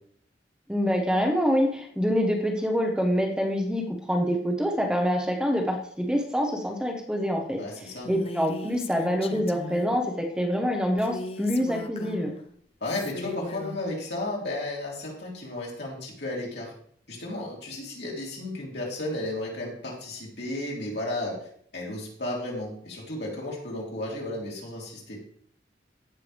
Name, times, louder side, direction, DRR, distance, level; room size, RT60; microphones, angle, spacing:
voice 1, 0.7-7.6 8.1-12.3, equal, 5° right, 2 dB, 0.9 m, -26 dB
voice 2, 7.6-8.1 12.8-16.7 17.1-21.4 21.7-25.2, left 1 dB, 65° left, -3 dB, 3.1 m, -33 dB
Female speech woman speaking, 8.0-10.0 11.0-12.4 12.8-13.8, left 2 dB, 35° left, 0.6 m, -38 dB
15.5 x 5.7 x 3.4 m, 0.64 s
head